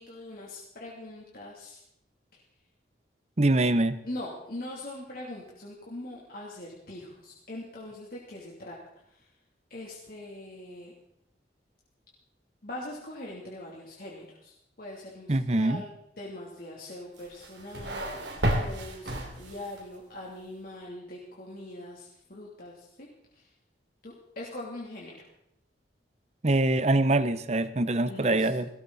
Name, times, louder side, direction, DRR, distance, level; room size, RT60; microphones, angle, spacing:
voice 1, 0.0-1.8 4.0-8.8 9.7-10.9 12.6-23.1 24.0-25.1 28.1-28.5, left 1 dB, 50° left, -4 dB, 2.9 m, -42 dB
voice 2, 3.4-4.0 15.3-15.8 26.4-28.7, right 2 dB, 35° right, 13 dB, 0.7 m, -24 dB
sound 1, 17.2-19.9, right 1 dB, 80° right, 2.8 m, -32 dB
18.0 x 17.5 x 4.1 m, 0.77 s
head